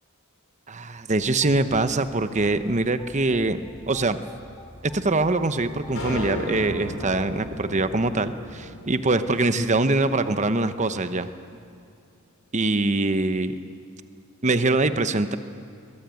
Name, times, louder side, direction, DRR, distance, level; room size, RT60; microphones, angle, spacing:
voice 1, 0.7-3.6 3.9-4.2 4.8-11.3 12.5-13.5 14.4-15.4, right 2 dB, 35° right, 11 dB, 1.0 m, -23 dB
sound 1, 1.2-6.3, left 1 dB, 15° left, 2.3 m, -47 dB
sound 2, 6.0-10.4, left 1 dB, 75° left, 4.9 m, -35 dB
22.5 x 21.5 x 9.2 m, 2.4 s
head